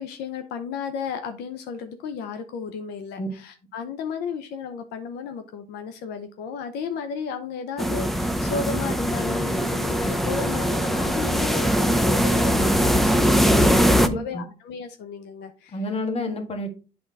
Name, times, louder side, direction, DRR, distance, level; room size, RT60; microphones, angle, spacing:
voice 1, 0.0-15.8, left 6 dB, 85° left, 7 dB, 0.8 m, -34 dB
sound 1, 7.8-14.1, equal, ahead, 0.6 m, -21 dB
voice 2, 13.9-14.5 15.7-16.7, left 2 dB, 35° left, 5 dB, 1.7 m, -29 dB
8.5 x 3.8 x 4.0 m, 0.34 s
cardioid pair, 110°, 17 cm